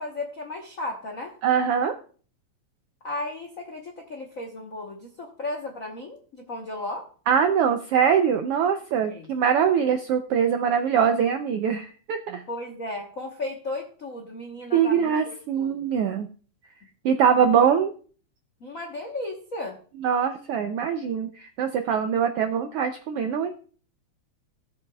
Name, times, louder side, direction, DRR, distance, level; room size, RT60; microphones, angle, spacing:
voice 1, 0.0-1.4 3.0-7.1 9.0-9.3 12.5-16.0 18.6-19.8, left 2 dB, 80° left, 1 dB, 0.7 m, -35 dB
voice 2, 1.4-2.0 7.3-12.4 14.7-16.3 17.0-17.9 20.0-23.6, right 7 dB, 85° right, 7 dB, 1.3 m, -23 dB
17.5 x 7.4 x 2.3 m, 0.41 s
omnidirectional pair, 3.3 m